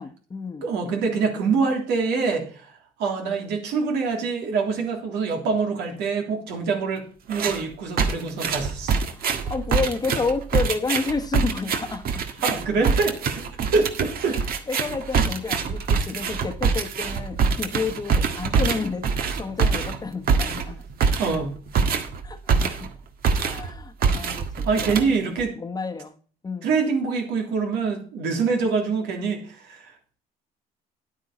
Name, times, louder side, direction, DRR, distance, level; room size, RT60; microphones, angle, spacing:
voice 1, 0.0-0.6 9.1-12.2 14.3-14.4 14.7-20.8 22.2-22.9 23.3-25.1 25.5-26.1 26.4-26.7, left 4 dB, 25° left, 7 dB, 1.2 m, -30 dB
voice 2, 0.6-2.7 3.0-9.0 12.4-13.4 13.7-14.4 21.2-21.6 24.6-25.6 26.6-29.8, right 4 dB, 85° right, 2 dB, 3.3 m, -25 dB
sound 1, 7.3-7.6 8.0-23.0 23.2-23.7 24.0-25.4, right 5 dB, 60° right, 1.7 m, -24 dB
10.0 x 9.1 x 4.3 m, 0.42 s
cardioid pair, 110°, 17 cm